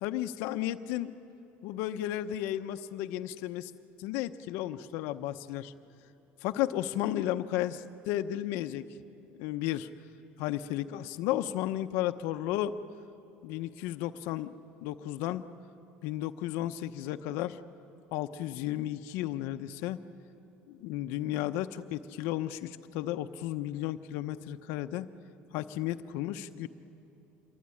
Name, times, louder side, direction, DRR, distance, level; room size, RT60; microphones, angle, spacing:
voice 1, 0.0-1.1 1.6-3.7 4.0-5.7 6.4-8.8 9.3-9.9 10.4-12.7 13.4-14.5 14.8-15.4 16.0-17.6 18.1-20.0 20.7-25.1 25.5-26.7, left 13 dB, 75° left, 10 dB, 0.8 m, -33 dB
26.5 x 23.0 x 9.8 m, 2.9 s
cardioid pair, 170°, 4 cm